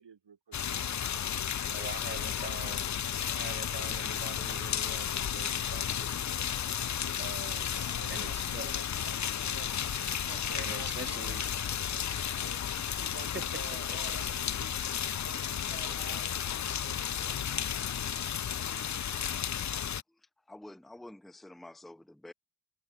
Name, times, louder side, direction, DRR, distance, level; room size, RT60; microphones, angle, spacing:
voice 1, 0.0-1.7 2.1-3.2 7.8-9.7 10.2-12.6 12.9-17.4, right 7 dB, 80° right, 7.5 m, -52 dB
sound 1, 0.5-20.0, left 9 dB, 45° left, 0.5 m, -33 dB
voice 2, 1.7-2.9 3.2-6.2 7.2-8.7 10.5-11.5 13.9-14.0 15.9-16.0, right 3 dB, 25° right, 4.0 m, -44 dB
voice 3, 20.5-22.3, left 1 dB, ahead, 0.7 m, -48 dB
wide cardioid pair, 130°, 42 cm